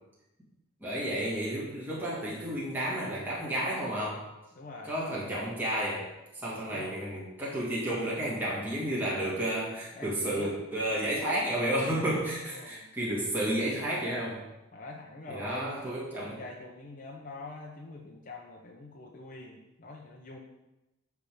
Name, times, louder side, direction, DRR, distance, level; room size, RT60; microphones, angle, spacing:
voice 1, 0.8-4.2 4.8-6.1 6.3-14.4 15.3-16.4, right 1 dB, 10° right, -8 dB, 2.1 m, -31 dB
voice 2, 4.5-4.9 6.5-7.0 9.9-10.5 11.0-11.4 12.4-12.9 14.7-15.6 16.1-20.4, left 2 dB, 40° left, -1 dB, 0.8 m, -45 dB
9.4 x 3.6 x 6.9 m, 0.98 s
head